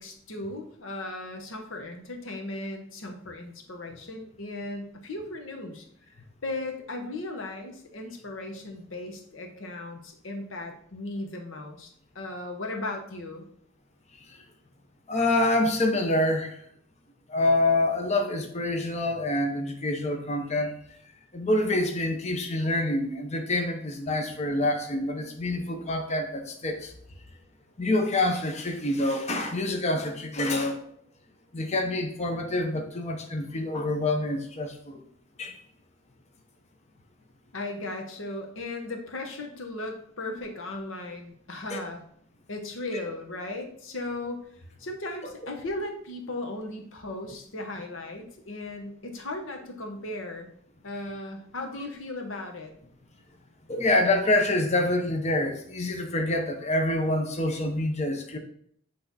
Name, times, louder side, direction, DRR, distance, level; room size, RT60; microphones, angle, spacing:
voice 1, 0.0-5.9 6.4-11.9 12.1-13.4 37.5-42.0 42.5-44.4 44.8-50.5 50.8-52.7, left 2 dB, 90° left, 3 dB, 1.1 m, -36 dB
voice 2, 15.1-16.6 17.3-20.7 21.3-26.9 27.8-30.8 31.5-35.0 35.4-35.6 41.7-41.8 42.9-43.0 53.7-58.4, left 2 dB, 35° left, 3 dB, 0.8 m, -26 dB
8.2 x 3.4 x 4.1 m, 0.65 s
head